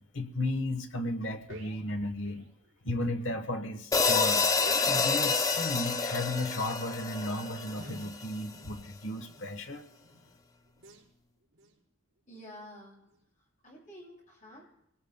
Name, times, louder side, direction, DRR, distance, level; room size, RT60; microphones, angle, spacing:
voice 1, 0.0-2.4 2.8-4.5 4.8-9.8, left 2 dB, 75° left, 7 dB, 1.2 m, -34 dB
sound 1, 1.1-3.2 3.5-3.6 3.7-3.9 4.5-9.6 10.0-10.3 10.8-11.1 11.5-11.8 12.3-12.4 13.1-13.2, right 1 dB, 75° right, 4.0 m, -51 dB
sound 2, 3.9-8.3, left 4 dB, 15° left, 0.6 m, -28 dB
voice 2, 12.3-13.0 13.6-14.6, equal, 40° left, -4 dB, 7.8 m, -49 dB
25.0 x 18.5 x 2.2 m, 0.79 s
head